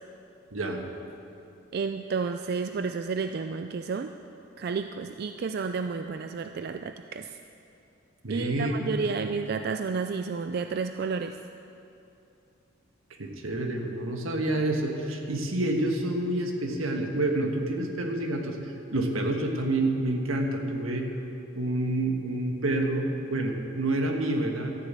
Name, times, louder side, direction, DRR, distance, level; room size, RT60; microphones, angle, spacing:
voice 1, 0.5-0.8 8.2-8.8 13.2-21.1 21.5-24.7, right 1 dB, 80° right, 3 dB, 1.5 m, -28 dB
voice 2, 1.7-4.1 4.6-7.4 8.3-11.4, right 5 dB, 50° right, 8 dB, 0.4 m, -31 dB
13.0 x 7.5 x 8.4 m, 2.7 s
head